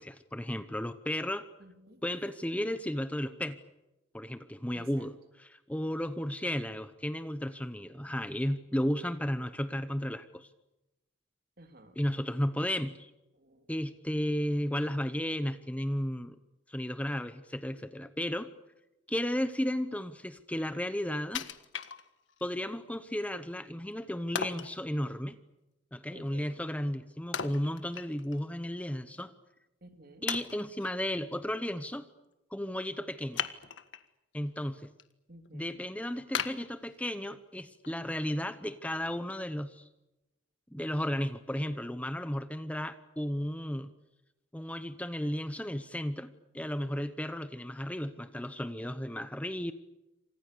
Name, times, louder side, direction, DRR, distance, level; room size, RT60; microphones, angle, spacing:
voice 1, 0.0-1.5 2.0-3.6 4.1-10.5 12.0-13.1 13.7-16.4 16.7-18.5 19.1-21.4 22.4-25.4 25.9-29.3 30.2-32.1 32.5-33.4 34.3-34.9 35.5-39.9 40.7-43.9 44.5-49.7, equal, 5° left, 11 dB, 0.9 m, -34 dB
voice 2, 1.6-2.0 4.7-5.1 11.6-12.0 13.3-13.7 26.1-26.6 29.8-30.3 35.3-35.9, right 1 dB, 50° right, 6 dB, 3.2 m, -54 dB
Wood, 21.3-22.5 22.9-23.0 24.3-24.8 27.3-28.4 28.8-28.9 29.6-29.7 30.3-30.9 33.3-34.1 34.6-35.0 35.4-35.5 36.3-37.4 37.8-37.9, left 7 dB, 70° left, 1.6 m, -37 dB
28.5 x 26.0 x 6.9 m, 0.98 s
head